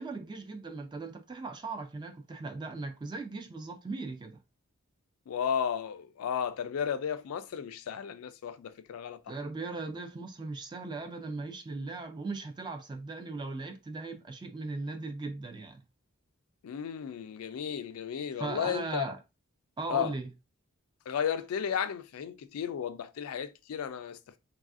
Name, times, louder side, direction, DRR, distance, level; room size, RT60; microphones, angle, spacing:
voice 1, 0.0-4.4 9.3-15.8 18.4-19.2 19.8-20.3, right 3 dB, 20° right, 0.3 m, -38 dB
voice 2, 5.3-9.4 16.6-19.1 19.9-20.1 21.1-24.2, left 8 dB, 75° left, 0.3 m, -34 dB
3.3 x 2.4 x 2.4 m
head